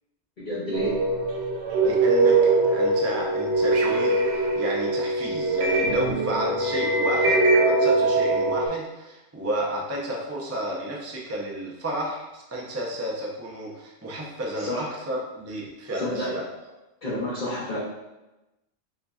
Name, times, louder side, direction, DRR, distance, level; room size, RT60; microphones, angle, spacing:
voice 1, 0.4-0.9 14.6-14.9 16.0-16.3 17.0-17.8, left 1 dB, 40° left, -8 dB, 1.1 m, -29 dB
sound 1, 0.7-8.7, right 2 dB, 65° right, 0.9 m, -22 dB
voice 2, 1.8-16.4, right 1 dB, 20° right, -2 dB, 0.4 m, -32 dB
7.3 x 2.8 x 2.4 m, 1.0 s
omnidirectional pair, 1.3 m